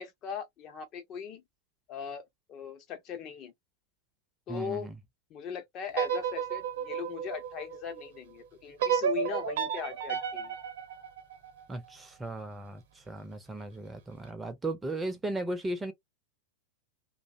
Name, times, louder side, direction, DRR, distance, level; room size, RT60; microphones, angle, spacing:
voice 1, 0.0-1.4 1.9-3.5 4.5-4.9 5.3-10.6, left 7 dB, 35° left, 0.7 m, -39 dB
voice 2, 4.5-4.9 11.7-15.9, right 2 dB, 10° right, 0.6 m, -36 dB
sound 1, 5.9-8.1 8.8-11.9, right 8 dB, 55° right, 0.9 m, -32 dB
2.6 x 2.1 x 2.4 m
figure-of-eight pair, 90°, 0 cm